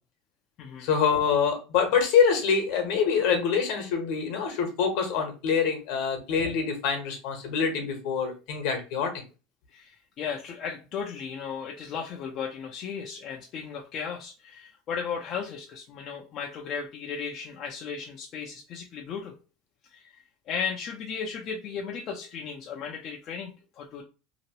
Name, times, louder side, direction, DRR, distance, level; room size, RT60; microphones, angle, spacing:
voice 1, 0.8-9.1, left 6 dB, 70° left, 4 dB, 1.1 m, -25 dB
voice 2, 9.7-19.4 19.9-24.0, left 6 dB, 45° left, 0 dB, 0.5 m, -36 dB
2.9 x 2.5 x 2.9 m, 0.32 s
supercardioid pair, 115°, 0 cm